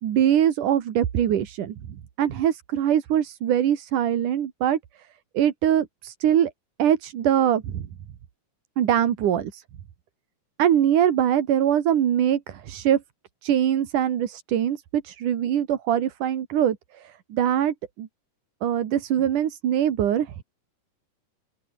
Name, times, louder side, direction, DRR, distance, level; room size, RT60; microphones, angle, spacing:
voice 1, 0.0-1.7 2.2-4.8 5.3-6.5 6.8-7.9 8.8-9.6 10.6-13.0 13.4-16.8 17.3-18.1 18.6-20.4, right 10 dB, 85° right, 3.4 m, -22 dB
open air
omnidirectional pair, 3.5 m